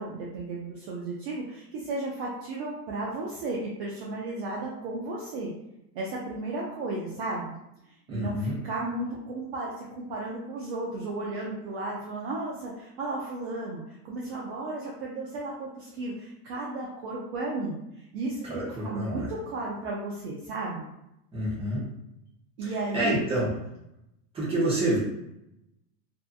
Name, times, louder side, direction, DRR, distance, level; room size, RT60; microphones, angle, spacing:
voice 1, 0.0-5.5 5.9-7.6 7.8-20.9 22.6-23.2, right 2 dB, 45° right, -4 dB, 0.4 m, -34 dB
voice 2, 8.1-8.6 18.4-19.3 21.3-21.8 22.9-23.5 24.3-25.0, right 1 dB, 10° right, -6 dB, 0.7 m, -27 dB
2.7 x 2.4 x 2.4 m, 0.85 s
supercardioid pair, 150°, 47 cm